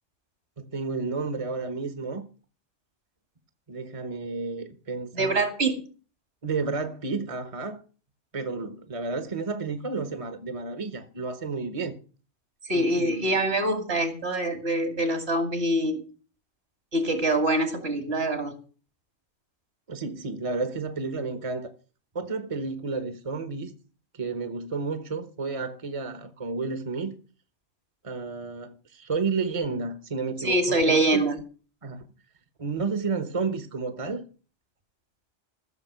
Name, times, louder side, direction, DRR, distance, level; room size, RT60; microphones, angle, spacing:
voice 1, 0.6-2.2 3.7-5.3 6.4-7.8 8.3-12.0 12.7-13.4 19.9-21.7 22.1-23.7 24.1-27.1 28.0-31.4 31.8-32.0 32.6-34.2, right 4 dB, 30° right, 1.2 m, -31 dB
voice 2, 5.1-5.8 12.7-16.0 16.9-18.6 30.4-31.4, right 1 dB, 65° right, 2.7 m, -24 dB
15.0 x 7.0 x 6.9 m
omnidirectional pair, 1.1 m